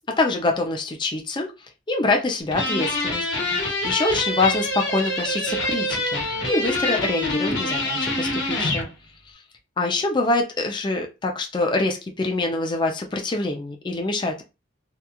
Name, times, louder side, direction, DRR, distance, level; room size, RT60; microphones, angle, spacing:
voice 1, 0.1-1.5 1.9-8.9 9.8-14.4, left 2 dB, 25° left, 0.4 m, -25 dB
sound 1, 2.5-8.9, left 2 dB, 60° left, 1.2 m, -25 dB
2.8 x 2.3 x 2.3 m
head